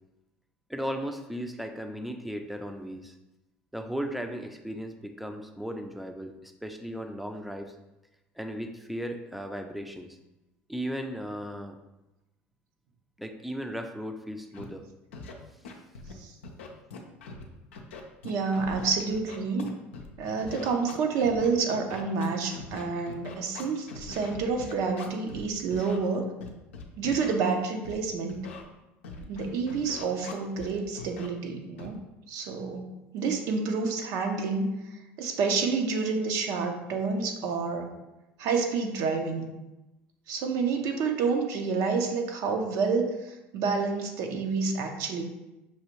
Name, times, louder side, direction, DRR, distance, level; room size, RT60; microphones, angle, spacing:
voice 1, 0.7-3.1 3.7-7.7 8.4-10.2 10.7-11.8 13.2-14.8, equal, ahead, 5 dB, 0.5 m, -36 dB
Scratching (performance technique), 14.5-14.6 15.1-15.3 15.6-16.1 16.4-17.4 17.7-20.1 20.4-25.4 25.7-26.0 26.4-27.3 27.8-28.0 28.3-28.6 29.0-30.7 31.0-31.3 31.8-32.0, left 4 dB, 85° left, 0.5 m, -42 dB
voice 2, 18.2-19.7 20.2-26.3 27.0-28.5 29.3-32.0 32.3-37.9 38.4-39.5 40.3-45.2, right 4 dB, 65° right, 4 dB, 0.6 m, -29 dB
5.5 x 2.4 x 3.0 m, 0.98 s
hypercardioid pair, 75°, 6 cm